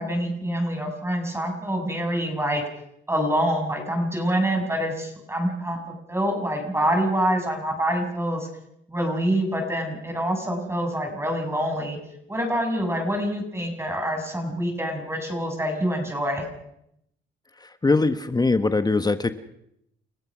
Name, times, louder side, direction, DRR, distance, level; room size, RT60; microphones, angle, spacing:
voice 1, 0.0-2.6 3.1-8.5 8.9-12.0 12.3-16.4, equal, 15° right, 3 dB, 6.6 m, -26 dB
voice 2, 17.6-19.3, left 3 dB, 20° left, 11 dB, 1.3 m, -22 dB
29.5 x 15.5 x 6.2 m, 0.76 s
cardioid pair, 90°, 20 cm